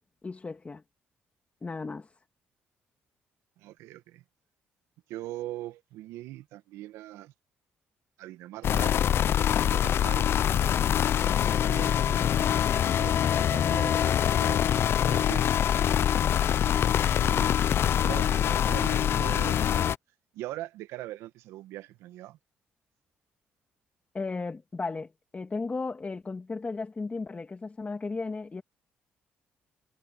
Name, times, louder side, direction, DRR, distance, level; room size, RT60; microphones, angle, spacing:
voice 1, 0.2-0.8 1.6-2.1 24.1-28.6, left 3 dB, 30° left, 2.2 m, -35 dB
voice 2, 3.6-4.2 5.1-7.3 8.2-9.0 9.4-10.3 11.2-12.5 13.0-15.5 16.4-16.9 17.2-17.6 17.9-19.9 20.3-22.4, right 15 dB, 80° right, 1.5 m, -42 dB
sound 1, 8.6-20.0, left 9 dB, 60° left, 0.6 m, -24 dB
supercardioid pair, 55°, 5 cm